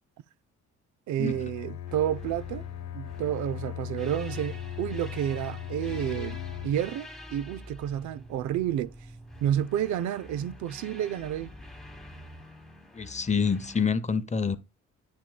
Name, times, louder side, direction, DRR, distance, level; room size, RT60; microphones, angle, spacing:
voice 1, 1.1-2.6 2.9-6.4 6.6-8.9 9.4-11.5, right 11 dB, 75° right, 0.5 m, -30 dB
Bowed string instrument, 1.3-6.9, left 11 dB, 70° left, 0.9 m, -38 dB
sound 1, 1.9-13.9, equal, ahead, 1.2 m, -47 dB
voice 2, 12.9-14.6, left 5 dB, 25° left, 0.7 m, -27 dB
9.6 x 6.2 x 2.2 m
cardioid pair, 90°, 30 cm